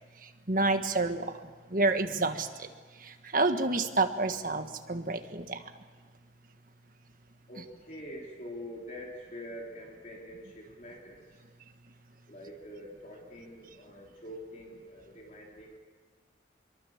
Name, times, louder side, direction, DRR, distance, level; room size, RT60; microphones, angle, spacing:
voice 1, 0.2-2.7 3.0-5.6, right 2 dB, 45° right, 6 dB, 1.6 m, -29 dB
voice 2, 7.5-11.2 12.3-15.8, equal, 40° left, -1 dB, 3.6 m, -45 dB
26.5 x 23.0 x 7.3 m, 1.5 s
head